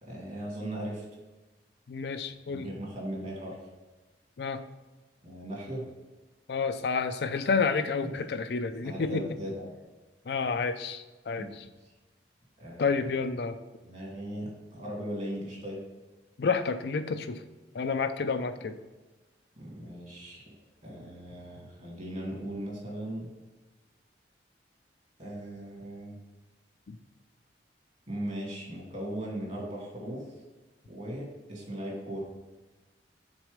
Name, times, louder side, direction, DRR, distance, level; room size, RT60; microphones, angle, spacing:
voice 1, 0.0-1.0 2.5-3.6 5.2-5.8 8.0-8.2 8.8-9.7 11.4-11.5 11.8-11.9 12.6-13.0 13.8-15.8 19.6-20.5 20.8-23.3 25.2-26.2 28.1-30.3 30.9-32.3, right 1 dB, 40° right, -2 dB, 2.2 m, -38 dB
voice 2, 1.9-2.7 4.4-4.6 6.5-9.2 10.3-11.7 12.8-13.6 16.4-17.4 17.7-18.8 26.9-27.0, left 5 dB, 65° left, 9 dB, 0.4 m, -30 dB
6.2 x 4.2 x 5.0 m, 1.2 s
head